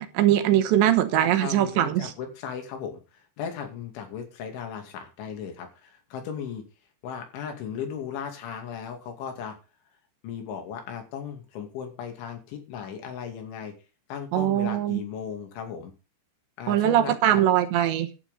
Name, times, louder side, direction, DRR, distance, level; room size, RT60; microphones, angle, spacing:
voice 1, 0.0-2.1 14.3-15.0 16.7-18.1, right 12 dB, 80° right, 3.3 m, -22 dB
voice 2, 1.2-3.0 3.4-6.6 7.0-9.6 10.2-13.7 14.1-15.9 16.6-17.4, left 7 dB, 85° left, 4.9 m, -36 dB
11.5 x 8.8 x 5.4 m
omnidirectional pair, 5.3 m